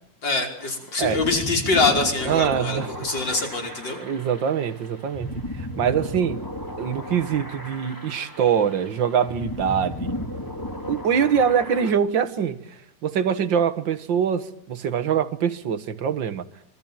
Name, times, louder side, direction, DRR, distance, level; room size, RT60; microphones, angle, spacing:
voice 1, 0.2-4.0, left 3 dB, 35° left, 5.8 m, -24 dB
sound 1, 0.6-11.9, left 1 dB, 5° left, 2.4 m, -35 dB
voice 2, 2.3-3.1 4.0-5.3 5.6-6.4 6.8-10.1 10.9-12.6 13.0-16.4, right 8 dB, 50° right, 1.7 m, -23 dB
26.0 x 24.0 x 9.1 m
omnidirectional pair, 3.5 m